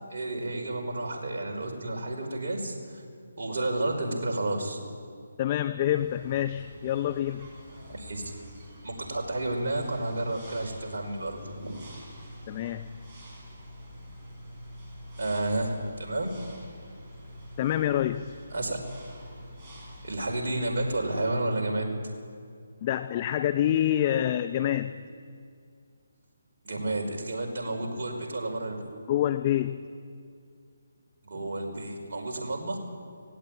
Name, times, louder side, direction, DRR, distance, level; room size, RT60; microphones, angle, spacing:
voice 1, 0.1-3.0 3.4-4.9 7.9-8.2 8.8-11.8 15.2-15.7 16.0-16.3 18.5-18.8 20.0-21.9 26.6-28.8 31.2-32.8, right 2 dB, 60° right, 0 dB, 5.2 m, -31 dB
voice 2, 5.4-7.5 12.5-12.9 17.6-18.4 22.8-25.1 29.1-29.8, left 11 dB, 30° left, 10 dB, 0.7 m, -27 dB
sound 1, 5.9-21.2, equal, 25° right, 5.9 m, -46 dB
19.0 x 16.5 x 9.1 m, 2.3 s
figure-of-eight pair, 150°, 0 cm